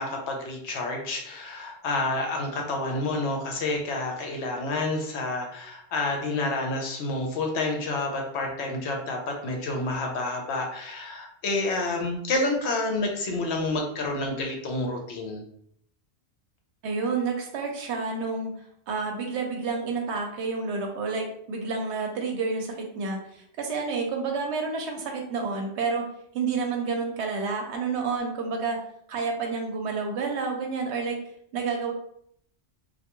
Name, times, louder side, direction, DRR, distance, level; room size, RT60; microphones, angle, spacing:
voice 1, 0.0-15.4, left 2 dB, 70° left, 2 dB, 0.8 m, -29 dB
voice 2, 16.8-18.5 18.9-26.1 26.3-28.8 29.1-31.2 31.5-31.9, right 4 dB, 70° right, 2 dB, 0.8 m, -29 dB
2.3 x 2.2 x 2.9 m, 0.68 s
omnidirectional pair, 1.2 m